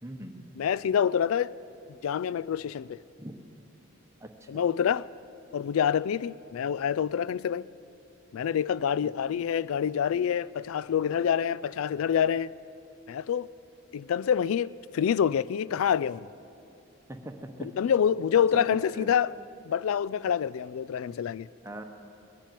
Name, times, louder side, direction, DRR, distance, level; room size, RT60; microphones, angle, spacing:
voice 1, 0.0-0.4 3.2-3.3 4.2-4.7 9.3-9.4 17.1-17.7 18.3-18.7 18.9-19.1 21.6-21.8, right 1 dB, 15° right, 0.9 m, -41 dB
voice 2, 0.6-1.5 2.0-3.0 4.5-5.1 5.5-7.7 8.3-12.5 13.1-13.5 13.9-16.3 17.6-19.3 19.7-21.5, left 8 dB, 75° left, 0.3 m, -27 dB
20.0 x 7.4 x 9.2 m
head